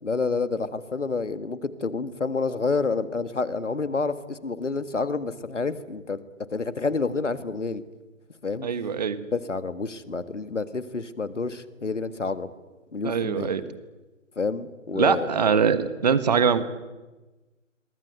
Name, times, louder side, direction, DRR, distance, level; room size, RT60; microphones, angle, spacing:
voice 1, 0.0-6.2 6.5-7.8 8.4-8.7 9.3-12.5 12.9-13.5 14.4-15.7, left 4 dB, 65° left, 13 dB, 1.9 m, -29 dB
voice 2, 8.6-9.2 13.0-13.6 14.9-16.6, right 6 dB, 30° right, 14 dB, 1.4 m, -23 dB
28.0 x 23.0 x 7.9 m, 1.2 s
figure-of-eight pair, 145°, 39 cm